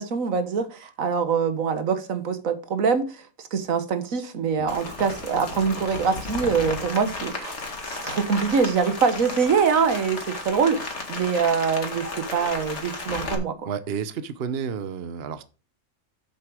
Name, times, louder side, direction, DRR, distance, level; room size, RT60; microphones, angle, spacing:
voice 1, 0.0-3.2 3.5-7.5 7.9-10.8 11.1-13.7, right 6 dB, 70° right, 1.6 m, -24 dB
Rain, 4.7-13.3, left 3 dB, 55° left, 2.2 m, -34 dB
voice 2, 13.7-15.4, right 7 dB, 50° right, 1.0 m, -31 dB
7.8 x 7.4 x 4.9 m
omnidirectional pair, 1.5 m